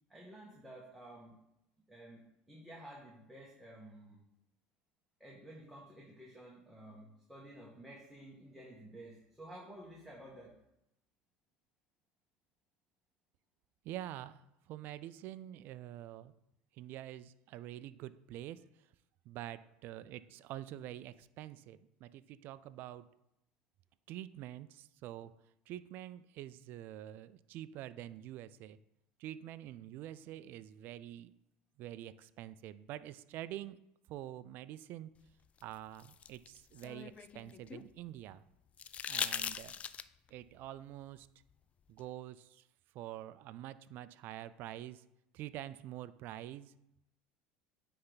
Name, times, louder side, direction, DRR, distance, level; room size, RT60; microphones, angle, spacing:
voice 1, 0.1-1.4 1.9-4.2 5.2-10.5, right 1 dB, 5° right, -4 dB, 1.5 m, -52 dB
voice 2, 13.8-14.4 14.7-16.3 16.7-18.6 19.3-23.1 24.1-25.3 25.7-28.8 29.2-31.3 31.8-33.8 34.1-35.1 35.6-38.4 39.1-39.8 40.3-41.3 41.9-42.6 42.9-45.0 45.3-46.8, right 13 dB, 60° right, 15 dB, 0.3 m, -46 dB
sound 1, 35.6-37.9 38.8-40.3 42.0-42.1, left 8 dB, 35° left, 0.3 m, -40 dB
9.5 x 3.3 x 4.0 m, 0.82 s
supercardioid pair, 95°, 4 cm